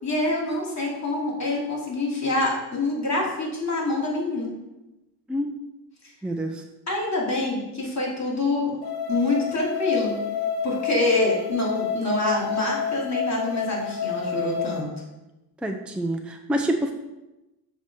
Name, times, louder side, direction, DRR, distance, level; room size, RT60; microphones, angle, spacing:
voice 1, 0.0-4.5 6.9-8.8 9.1-10.1 10.6-14.9, left 2 dB, 40° left, -3 dB, 2.5 m, -26 dB
voice 2, 6.2-6.6 15.6-16.9, right 1 dB, ahead, 3 dB, 0.6 m, -27 dB
sound 1, 8.8-14.8, left 6 dB, 80° left, 1.1 m, -29 dB
7.3 x 3.1 x 5.9 m, 1.0 s
cardioid pair, 65°, 42 cm